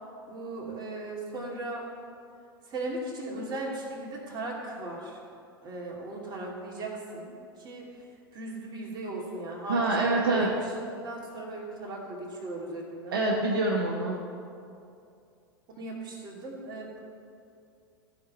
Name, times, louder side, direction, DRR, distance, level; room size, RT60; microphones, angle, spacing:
voice 1, 0.3-1.9 2.6-5.2 5.6-8.0 8.3-10.7 11.0-13.2 15.8-16.9, right 2 dB, 35° right, -2 dB, 2.7 m, -37 dB
voice 2, 9.7-10.5 13.1-14.3, right 2 dB, 70° right, -1 dB, 1.2 m, -26 dB
14.5 x 5.2 x 5.7 m, 2.5 s
figure-of-eight pair, 90°, 12 cm